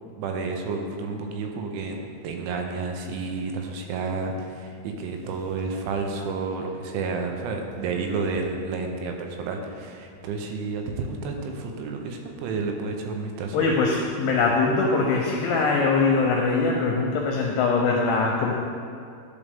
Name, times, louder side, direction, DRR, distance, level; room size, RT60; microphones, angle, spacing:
voice 1, 0.2-2.0 2.2-13.7, right 4 dB, 85° right, 3 dB, 3.1 m, -30 dB
voice 2, 13.5-18.5, left 4 dB, 80° left, 0 dB, 2.5 m, -22 dB
11.0 x 5.4 x 3.5 m, 2.3 s
omnidirectional pair, 5.3 m